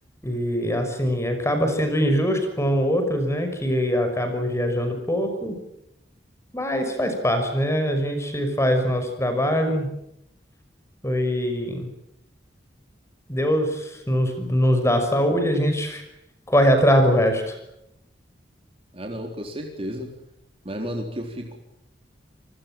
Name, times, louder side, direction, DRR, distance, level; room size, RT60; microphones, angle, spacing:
voice 1, 0.2-5.6 6.5-9.9 11.0-11.9 13.3-13.7 14.1-16.0 16.5-17.4, equal, 15° left, 6 dB, 5.8 m, -22 dB
voice 2, 18.9-20.1 20.6-21.6, equal, 35° right, 2 dB, 4.0 m, -32 dB
30.0 x 21.0 x 7.6 m, 0.81 s
head